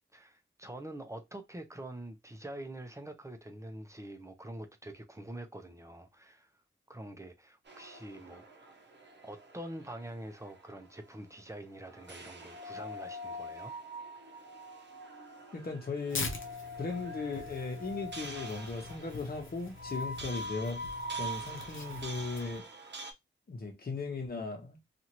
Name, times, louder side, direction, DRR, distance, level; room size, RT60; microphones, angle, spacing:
voice 1, 0.1-6.6 6.9-8.5 9.2-13.7 14.2-14.4, right 1 dB, 15° right, 0.6 m, -45 dB
sound 1, 7.7-23.1, equal, 60° right, 0.7 m, -44 dB
voice 2, 15.5-16.3 16.8-20.8 21.2-22.6 23.5-25.0, left 3 dB, 50° left, 1.0 m, -37 dB
Tearing, 16.1-22.6, left 3 dB, 80° left, 0.6 m, -44 dB
2.8 x 2.5 x 2.9 m
wide cardioid pair, 80°, 20 cm